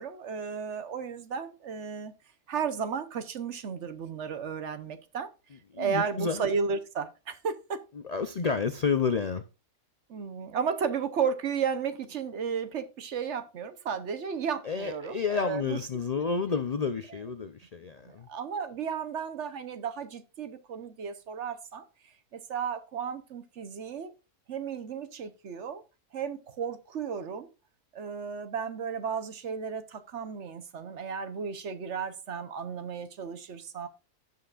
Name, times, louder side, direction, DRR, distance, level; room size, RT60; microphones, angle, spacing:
voice 1, 0.0-2.1 2.5-5.3 5.8-7.8 10.1-15.8 16.2-16.3 18.0-21.8 22.3-24.1 24.5-25.8 26.1-27.5 27.9-33.9, right 6 dB, 55° right, 1.1 m, -34 dB
voice 2, 5.7-6.4 7.9-9.4 14.6-18.3, left 5 dB, 65° left, 0.4 m, -30 dB
16.0 x 5.7 x 2.4 m
omnidirectional pair, 1.5 m